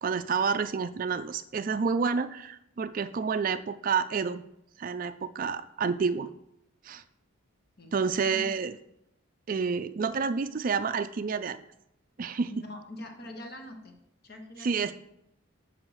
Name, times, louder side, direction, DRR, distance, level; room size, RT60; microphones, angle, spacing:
voice 1, 0.0-4.4 4.8-6.3 6.9-7.0 7.9-8.7 9.5-11.6 12.2-12.5 14.6-14.9, right 5 dB, 40° right, 11 dB, 0.3 m, -29 dB
voice 2, 7.8-8.5 12.5-13.9 14.2-14.9, left 1 dB, 50° left, 4 dB, 1.1 m, -44 dB
7.5 x 5.3 x 4.8 m, 0.81 s
head